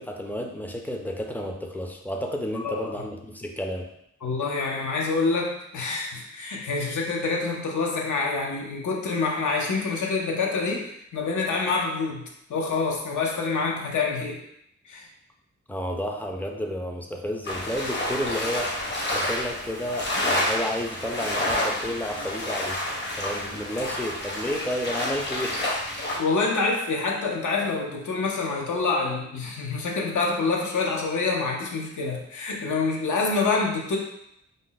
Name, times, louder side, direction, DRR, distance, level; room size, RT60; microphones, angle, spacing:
voice 1, 0.0-3.9 15.7-18.8 19.1-25.6, equal, 5° left, 2 dB, 0.4 m, -31 dB
voice 2, 4.2-12.2 12.5-14.4 14.9-15.0 26.2-34.0, left 4 dB, 80° left, -1 dB, 0.6 m, -26 dB
sound 1, 17.4-26.2, left 1 dB, 35° left, 0.7 m, -29 dB
2.5 x 2.0 x 3.8 m, 0.76 s
wide cardioid pair, 80°, 30 cm